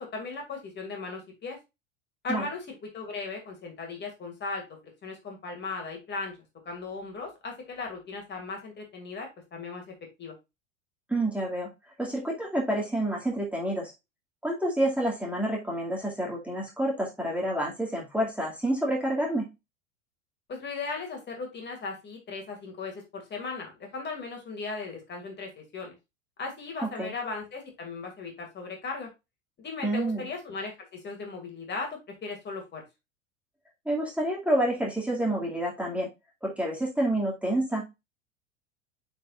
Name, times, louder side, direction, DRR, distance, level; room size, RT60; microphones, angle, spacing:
voice 1, 0.0-1.6 2.2-4.6 5.0-6.3 6.7-9.8 10.2-10.3 20.5-26.0 26.4-29.1 29.6-32.8, left 4 dB, 30° left, 2 dB, 2.5 m, -37 dB
voice 2, 11.1-11.7 12.0-13.9 14.4-19.5 26.8-27.1 29.8-30.3 33.9-36.1 36.4-37.8, right 1 dB, 5° right, -3 dB, 2.3 m, -28 dB
9.0 x 4.6 x 2.5 m, 0.24 s
figure-of-eight pair, 85°, 38 cm